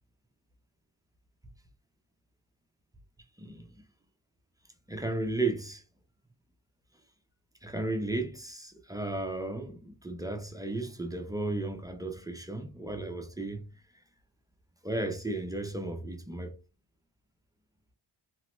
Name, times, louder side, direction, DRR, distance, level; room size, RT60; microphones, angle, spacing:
voice 1, 3.4-3.8 4.9-5.8 7.6-13.7 14.8-16.6, right 2 dB, 10° right, 0.3 m, -34 dB
2.9 x 2.0 x 3.0 m
cardioid pair, 100°, 50 cm